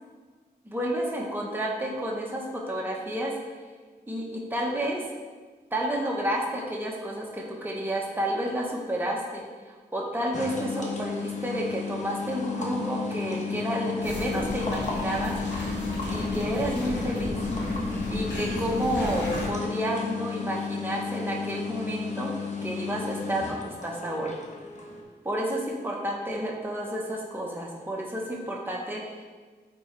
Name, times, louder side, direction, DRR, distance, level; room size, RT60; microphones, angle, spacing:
voice 1, 0.6-3.3 4.1-5.0 5.7-9.4 9.9-15.4 16.1-17.4 18.1-22.3 22.6-24.3 25.2-29.2, right 1 dB, 10° right, -2 dB, 1.1 m, -30 dB
sound 1, 10.3-25.0, left 4 dB, 45° left, 1.1 m, -33 dB
sound 2, 14.0-19.5, left 1 dB, 85° left, 1.4 m, -35 dB
8.8 x 4.2 x 3.3 m, 1.4 s
wide cardioid pair, 65°, 18 cm